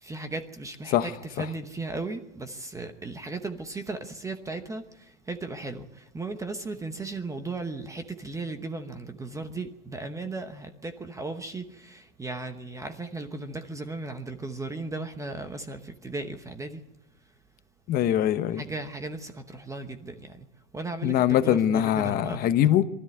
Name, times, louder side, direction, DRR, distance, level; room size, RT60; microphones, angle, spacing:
voice 1, 0.0-16.8 18.5-20.4 20.7-22.5, right 3 dB, 10° right, 0.9 m, -36 dB
voice 2, 17.9-18.6 21.0-22.8, left 11 dB, 25° left, 0.8 m, -23 dB
23.0 x 13.5 x 9.5 m
supercardioid pair, 145°, 39 cm